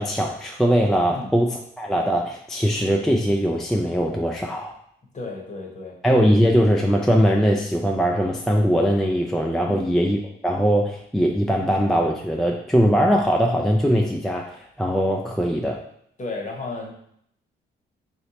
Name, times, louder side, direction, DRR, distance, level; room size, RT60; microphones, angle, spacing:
voice 1, 0.0-4.7 6.0-15.8, equal, ahead, 0 dB, 0.3 m, -21 dB
voice 2, 5.1-5.9 9.6-9.8 16.2-16.9, left 3 dB, 35° left, 0 dB, 1.0 m, -33 dB
3.1 x 3.0 x 2.9 m, 0.70 s
cardioid pair, 80°, 21 cm